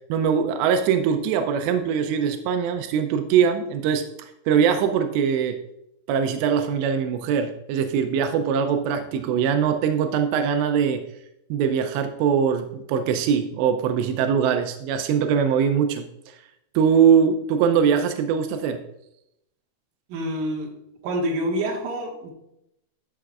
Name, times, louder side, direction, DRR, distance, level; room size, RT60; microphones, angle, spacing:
voice 1, 0.1-5.6 6.1-11.0 11.5-16.1 16.8-18.8, right 7 dB, 90° right, 7 dB, 2.8 m, -22 dB
voice 2, 20.1-20.7 21.0-22.3, right 1 dB, 65° right, -2 dB, 2.8 m, -27 dB
11.0 x 6.9 x 2.4 m, 0.82 s
omnidirectional pair, 4.9 m